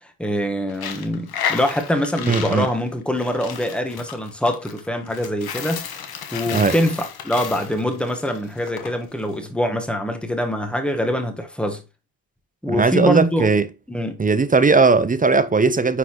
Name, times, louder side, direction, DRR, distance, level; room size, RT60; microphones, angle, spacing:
voice 1, 0.2-6.0 6.3-11.8 12.6-13.5 13.9-14.2, equal, ahead, 1.2 m, -24 dB
Coin (dropping), 0.7-8.9, left 8 dB, 55° left, 1.2 m, -32 dB
voice 2, 2.3-2.7 6.5-6.7 12.7-13.7 14.2-16.0, right 4 dB, 20° right, 0.4 m, -18 dB
9.5 x 4.0 x 3.0 m
cardioid pair, 105°, 44 cm